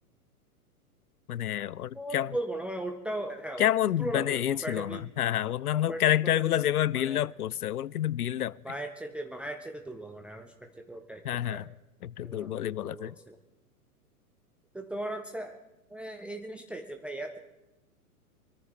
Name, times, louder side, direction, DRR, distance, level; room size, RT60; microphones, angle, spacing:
voice 1, 1.3-2.3 3.6-8.6 11.2-11.6 12.0-13.1, left 11 dB, 75° left, 0.5 m, -28 dB
voice 2, 1.9-3.7 4.0-5.1 5.7-7.3 8.6-11.7 12.2-13.4 14.7-15.6 15.9-17.4, right 1 dB, 5° right, 0.5 m, -38 dB
24.0 x 14.0 x 3.8 m
figure-of-eight pair, 105°, 45 cm